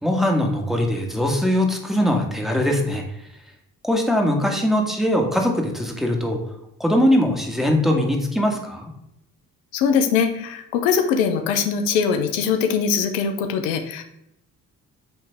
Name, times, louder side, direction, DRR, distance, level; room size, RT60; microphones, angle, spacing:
voice 1, 0.0-3.0 3.8-6.4 6.8-8.9, left 1 dB, ahead, 1 dB, 1.6 m, -21 dB
voice 2, 9.7-14.0, left 6 dB, 90° left, 7 dB, 0.6 m, -21 dB
9.0 x 3.2 x 3.5 m, 0.81 s
hypercardioid pair, 50°, 39 cm